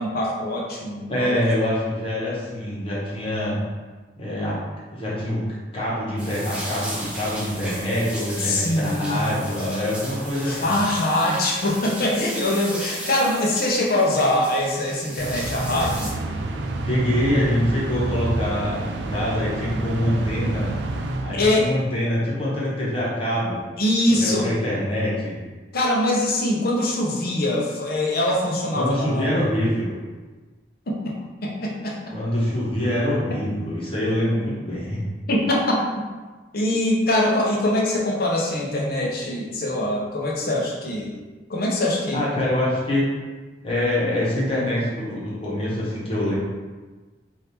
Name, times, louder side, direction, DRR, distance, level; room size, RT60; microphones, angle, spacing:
voice 1, 0.0-1.4 8.4-9.4 10.4-16.1 21.3-21.7 23.8-24.5 25.7-29.3 30.9-31.1 31.4-31.9 35.3-35.6 36.5-41.2 41.5-42.3, left 1 dB, 60° left, -2 dB, 0.8 m, -23 dB
voice 2, 1.1-3.6 4.2-4.6 4.9-5.4 5.7-10.8 16.8-20.7 21.2-23.6 24.2-25.4 28.7-29.9 32.1-35.0 42.1-43.1 43.6-46.4, left 1 dB, 30° left, -7 dB, 1.2 m, -25 dB
sound 1, 6.2-16.1, right 1 dB, 5° right, 0.8 m, -36 dB
sound 2, 15.2-22.0, right 2 dB, 85° right, 0.4 m, -28 dB
3.5 x 2.7 x 4.3 m, 1.3 s
head